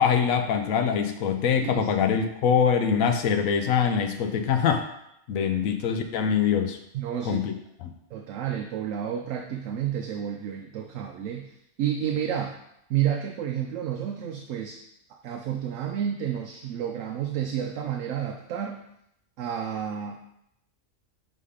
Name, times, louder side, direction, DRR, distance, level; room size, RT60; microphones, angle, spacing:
voice 1, 0.0-4.9 5.3-6.8 7.2-7.5 7.8-7.9, left 7 dB, 90° left, 6 dB, 1.0 m, -24 dB
voice 2, 6.9-7.4 8.1-12.6 12.9-14.8 15.2-18.8 19.4-20.3, right 9 dB, 75° right, 3 dB, 0.9 m, -30 dB
5.4 x 4.0 x 4.9 m, 0.78 s
omnidirectional pair, 1.4 m